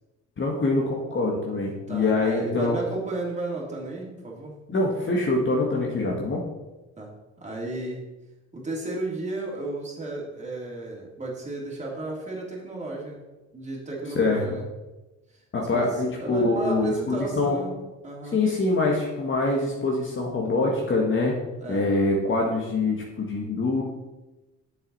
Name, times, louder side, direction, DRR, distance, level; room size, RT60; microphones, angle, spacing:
voice 1, 0.4-2.8 4.7-6.5 14.1-14.4 15.5-17.6 18.3-21.4 21.7-23.8, left 3 dB, 40° left, -2 dB, 1.6 m, -24 dB
voice 2, 1.9-4.6 7.0-7.1 7.4-8.0 8.5-13.2 13.5-14.6 15.6-18.4 21.6-21.9, right 2 dB, 25° right, -3 dB, 3.0 m, -33 dB
7.9 x 7.0 x 4.1 m, 1.1 s
cardioid pair, 90°, 30 cm